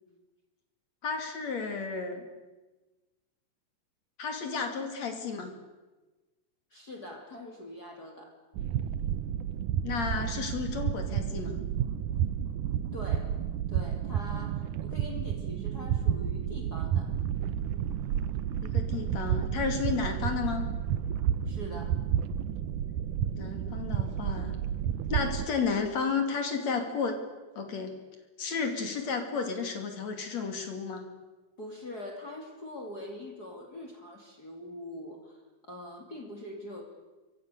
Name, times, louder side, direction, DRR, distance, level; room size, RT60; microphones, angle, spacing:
voice 1, 1.0-2.2 4.2-5.5 9.8-11.6 18.6-20.7 23.4-24.6 25.1-27.2 27.6-27.9 28.4-31.1, left 5 dB, 50° left, 5 dB, 3.5 m, -32 dB
voice 2, 6.7-8.4 12.9-13.4 13.7-17.1 21.5-22.0 31.6-36.8, left 1 dB, 30° left, 3 dB, 2.8 m, -43 dB
sound 1, 8.6-25.5, right 9 dB, 70° right, 2.1 m, -31 dB
26.5 x 24.0 x 6.8 m, 1.2 s
omnidirectional pair, 4.2 m